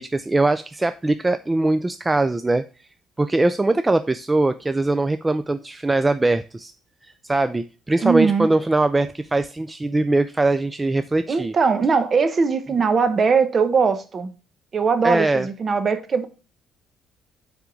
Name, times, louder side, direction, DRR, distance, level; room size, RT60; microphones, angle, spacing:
voice 1, 0.0-2.7 3.2-6.7 7.0-11.5 15.0-15.5, right 2 dB, 15° right, 0.3 m, -21 dB
voice 2, 8.0-8.5 11.3-14.3 14.7-16.3, right 5 dB, 35° right, 0.9 m, -20 dB
7.5 x 3.6 x 4.5 m
cardioid pair, 115°, 0 cm